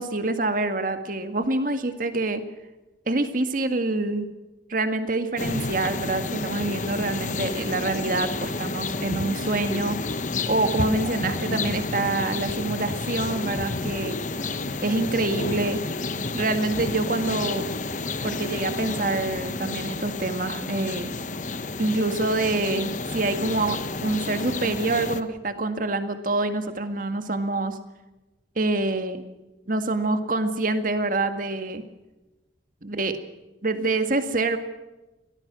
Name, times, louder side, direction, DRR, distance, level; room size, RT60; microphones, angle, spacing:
voice 1, 0.0-2.4 3.1-4.3 4.7-10.0 10.5-14.2 14.8-15.8 16.3-17.7 18.2-21.1 21.8-27.8 28.6-29.2 29.7-31.8 32.8-33.1 33.6-34.6, right 2 dB, 45° right, 8 dB, 2.0 m, -26 dB
sound 1, 5.4-25.2, left 3 dB, 40° left, 1.1 m, -30 dB
23.5 x 18.5 x 6.3 m, 1.0 s
head